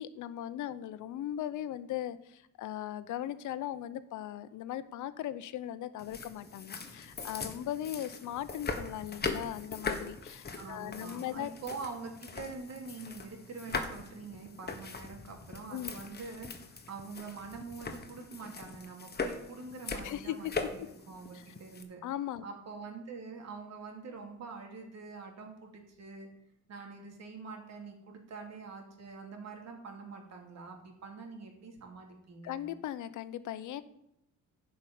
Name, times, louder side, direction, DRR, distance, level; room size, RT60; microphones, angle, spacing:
voice 1, 0.0-11.5 15.7-16.0 20.0-20.7 22.0-22.4 32.4-33.8, left 11 dB, 80° left, 15 dB, 0.8 m, -38 dB
sound 1, 6.0-21.8, left 4 dB, 35° left, 1.4 m, -41 dB
voice 2, 10.6-22.0 22.4-26.3 26.7-32.6, right 4 dB, 60° right, 2 dB, 2.8 m, -45 dB
11.0 x 5.3 x 8.4 m, 0.79 s
cardioid pair, 90°, 30 cm